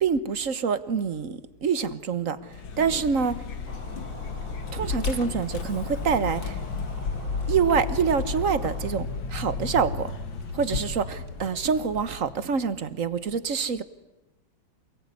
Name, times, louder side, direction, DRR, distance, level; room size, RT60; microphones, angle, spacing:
voice 1, 0.0-3.4 4.7-6.6 7.5-10.1 10.5-13.8, right 6 dB, 45° right, 14 dB, 1.3 m, -26 dB
Vehicle, 2.5-12.8, left 4 dB, 70° left, 2.6 m, -33 dB
sound 1, 3.7-8.9, equal, 60° right, 4.8 m, -43 dB
27.5 x 20.5 x 9.7 m, 1.0 s
omnidirectional pair, 2.2 m